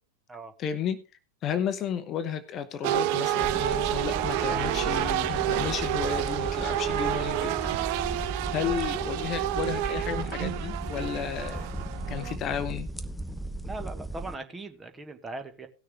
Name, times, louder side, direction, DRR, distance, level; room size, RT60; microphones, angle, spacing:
voice 1, 0.6-1.0 1.4-7.9 8.5-11.7 12.1-12.9, left 8 dB, 30° left, 1.0 m, -33 dB
sound 1, 2.8-12.3, right 13 dB, 45° right, 0.6 m, -29 dB
sound 2, 3.4-14.4, right 1 dB, 5° left, 0.7 m, -37 dB
voice 2, 13.6-15.7, right 2 dB, 15° right, 1.5 m, -39 dB
18.0 x 6.6 x 3.5 m
figure-of-eight pair, 90°, 0 cm